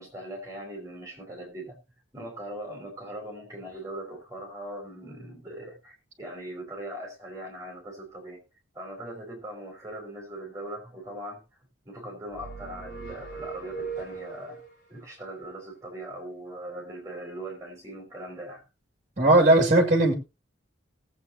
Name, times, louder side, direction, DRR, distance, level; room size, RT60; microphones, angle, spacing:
voice 1, 0.0-1.8 2.1-8.4 8.7-11.4 11.8-14.6 14.9-18.6, right 1 dB, 15° right, 5.1 m, -40 dB
sound 1, 12.3-14.7, right 5 dB, 55° left, 3.4 m, -39 dB
voice 2, 19.2-20.1, right 2 dB, 35° right, 2.6 m, -18 dB
19.5 x 8.1 x 2.9 m
head